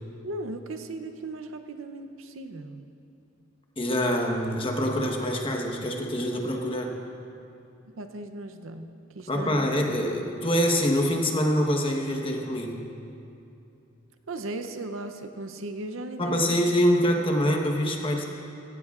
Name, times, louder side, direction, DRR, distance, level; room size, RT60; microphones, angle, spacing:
voice 1, 0.2-2.8 7.9-8.9 9.1-9.7 14.3-16.6, right 2 dB, 85° right, 8 dB, 0.7 m, -37 dB
voice 2, 3.8-6.9 9.3-12.8 16.2-18.2, equal, 25° left, 1 dB, 1.2 m, -25 dB
16.5 x 15.5 x 2.5 m, 2.7 s
head